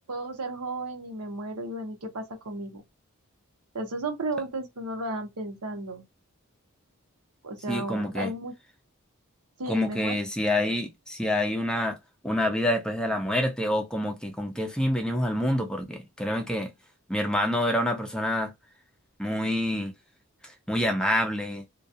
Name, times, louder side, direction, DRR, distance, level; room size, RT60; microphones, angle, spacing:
voice 1, 0.1-2.8 3.7-6.0 7.4-8.5 9.6-10.2, right 2 dB, 85° right, 0.8 m, -34 dB
voice 2, 7.7-8.3 9.7-12.0 12.2-16.7 17.1-18.5 19.2-19.9 20.4-21.6, left 1 dB, 5° left, 0.4 m, -27 dB
2.3 x 2.2 x 2.6 m
head